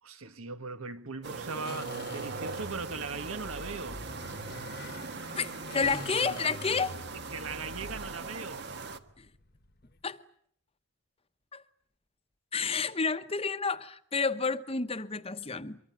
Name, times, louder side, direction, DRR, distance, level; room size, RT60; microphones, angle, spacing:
voice 1, 0.0-4.0 7.3-8.7, right 4 dB, 75° right, 1.8 m, -39 dB
sound 1, 1.2-9.0, right 4 dB, 50° right, 1.5 m, -40 dB
sound 2, 1.7-10.0, left 2 dB, 45° left, 1.2 m, -46 dB
voice 2, 5.4-7.0 9.2-9.3 10.0-10.2 11.5-11.6 12.5-15.8, left 4 dB, 25° left, 1.1 m, -30 dB
24.5 x 23.5 x 9.0 m
head